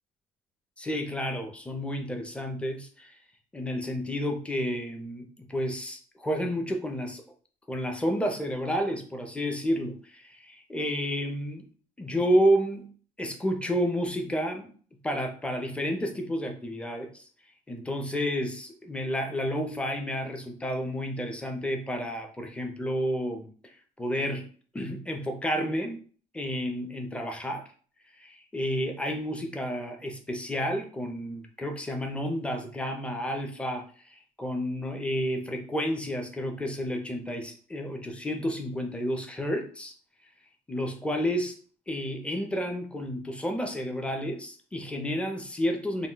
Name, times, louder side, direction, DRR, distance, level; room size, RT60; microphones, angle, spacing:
voice 1, 0.8-3.2 3.5-7.2 7.7-11.7 12.0-12.9 13.2-14.7 15.0-17.3 17.7-24.5 24.7-26.0 26.3-27.7 28.2-39.9 40.7-41.6 41.9-46.1, equal, 5° left, 4 dB, 0.5 m, -30 dB
2.2 x 2.1 x 3.8 m, 0.43 s
cardioid pair, 110°, 17 cm